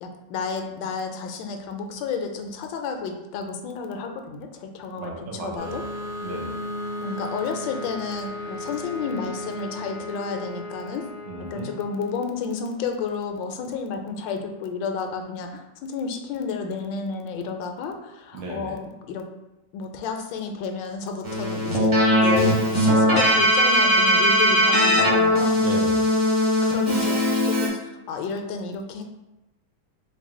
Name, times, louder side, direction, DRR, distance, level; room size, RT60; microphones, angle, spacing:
voice 1, 0.0-5.8 7.0-11.0 11.5-19.3 19.7-21.9 22.2-25.6 26.6-27.2 27.4-29.0, left 5 dB, 85° left, 4 dB, 1.3 m, -31 dB
voice 2, 5.0-6.6 11.2-11.8 18.3-18.8 25.6-26.2, right 2 dB, 75° right, -1 dB, 1.5 m, -35 dB
sound 1, 5.6-12.9, left 1 dB, 55° left, 0.4 m, -35 dB
Keyboard (musical), 21.2-27.7, equal, 30° right, 0.6 m, -19 dB
4.6 x 2.2 x 3.6 m, 0.97 s
omnidirectional pair, 2.0 m